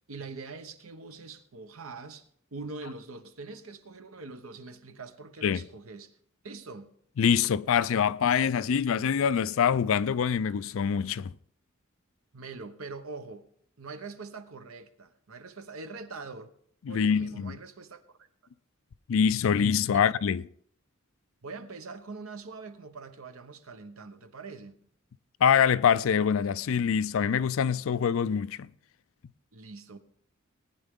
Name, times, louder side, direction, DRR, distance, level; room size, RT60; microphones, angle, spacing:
voice 1, 0.1-2.2 2.5-6.1 6.4-6.9 12.3-13.5 13.8-16.5 16.9-18.3 19.9-20.1 21.4-24.7 29.5-30.0, right 3 dB, 80° right, 1.0 m, -43 dB
voice 2, 7.2-11.3 16.9-17.6 19.1-20.4 25.4-28.7, left 7 dB, 70° left, 0.4 m, -25 dB
18.5 x 9.8 x 3.7 m
head